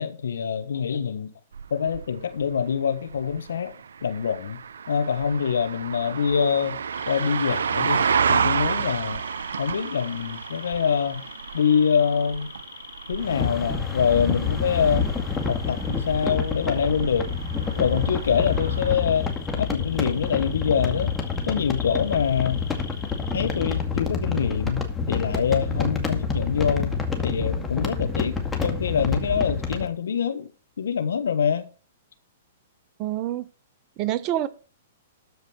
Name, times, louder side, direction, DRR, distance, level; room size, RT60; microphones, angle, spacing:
voice 1, 0.0-1.3 1.7-4.6 4.9-6.8 7.1-9.2 9.6-11.2 11.5-12.5 13.1-15.1 15.5-17.3 17.8-19.3 19.6-21.1 21.5-22.6 23.3-26.9 27.2-28.4 28.6-30.5 30.8-31.6, left 7 dB, 80° left, 1.4 m, -25 dB
sound 1, 1.5-19.0, right 6 dB, 80° right, 0.5 m, -31 dB
sound 2, 6.9-23.8, left 6 dB, 60° left, 3.8 m, -44 dB
sound 3, 13.2-29.9, left 5 dB, 10° left, 2.1 m, -28 dB
voice 2, 33.0-33.4 34.0-34.5, right 13 dB, 35° right, 1.0 m, -26 dB
13.0 x 5.1 x 6.3 m
hypercardioid pair, 125°, 0 cm